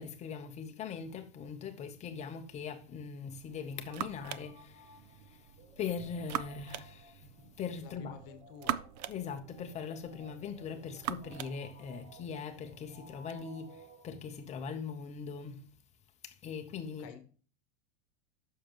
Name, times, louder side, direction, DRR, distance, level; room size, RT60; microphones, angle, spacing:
voice 1, 0.0-5.5 5.8-8.1 9.1-15.7 16.2-17.1, left 6 dB, 20° left, 0.8 m, -41 dB
sound 1, 3.3-13.4, right 11 dB, 35° right, 0.4 m, -43 dB
sound 2, 3.9-14.6, right 2 dB, 60° right, 4.2 m, -57 dB
voice 2, 7.8-8.8 17.0-17.2, left 7 dB, 40° left, 1.4 m, -50 dB
10.0 x 6.7 x 2.9 m
supercardioid pair, 155°, 37 cm